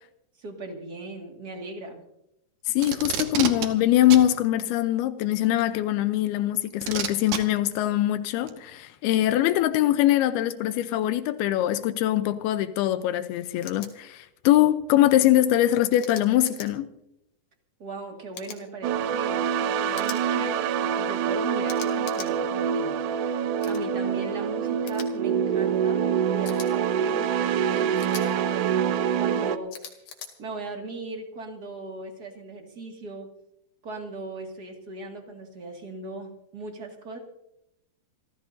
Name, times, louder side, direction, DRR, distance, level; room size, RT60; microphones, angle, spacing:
voice 1, 0.4-2.0 17.8-27.3 27.7-30.0 30.4-33.3 33.8-37.2, right 2 dB, 35° right, 2 dB, 1.8 m, -39 dB
voice 2, 2.7-16.9, left 13 dB, 90° left, 10 dB, 2.7 m, -23 dB
Packing tape duct tape, 2.8-3.7 4.1-4.3 5.6-5.7 6.8-7.4 8.5-8.6, right 9 dB, 65° right, 2.2 m, -28 dB
sound 1, 13.6-13.9 16.0-16.7 18.3-18.6 19.9-20.2 21.7-22.3 23.6-23.8 24.9-25.1 26.5-26.7 28.0-28.3 29.7-30.3, left 7 dB, 65° left, 3.3 m, -40 dB
sound 2, 18.8-29.6, right 8 dB, 80° right, 1.9 m, -25 dB
28.0 x 14.5 x 2.7 m, 0.80 s
omnidirectional pair, 4.4 m